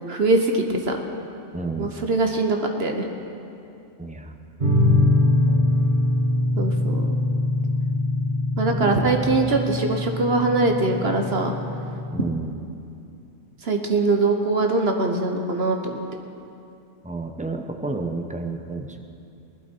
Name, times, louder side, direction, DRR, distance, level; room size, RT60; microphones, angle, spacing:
voice 1, 0.1-1.0 1.8-3.0 6.6-7.2 8.6-11.5 13.6-16.0, right 3 dB, 50° right, 4 dB, 1.2 m, -22 dB
voice 2, 1.5-1.9 4.0-4.4 5.0-5.7 8.7-9.6 12.1-12.5 17.0-19.0, right 3 dB, 10° right, 5 dB, 0.5 m, -32 dB
sound 1, 4.6-12.3, left 2 dB, 35° right, 1.8 m, -23 dB
19.0 x 11.5 x 4.5 m, 2.6 s
omnidirectional pair, 1.4 m